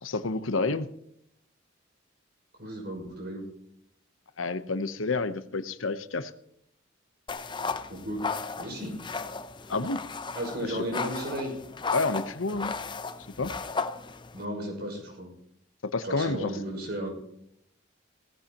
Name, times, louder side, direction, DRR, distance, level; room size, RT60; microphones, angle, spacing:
voice 1, 0.0-0.9 4.4-6.3 9.7-10.0 10.6-10.8 11.9-12.7 13.4-13.5 15.8-16.5, left 3 dB, 90° left, 12 dB, 0.9 m, -29 dB
voice 2, 2.6-3.4 7.9-8.3 8.6-9.0 10.3-11.5 14.3-15.3 16.0-17.1, equal, 55° right, 1 dB, 6.0 m, -34 dB
sound 1, 7.3-14.5, left 4 dB, 25° left, 0.6 m, -35 dB
17.5 x 15.0 x 3.0 m, 0.72 s
head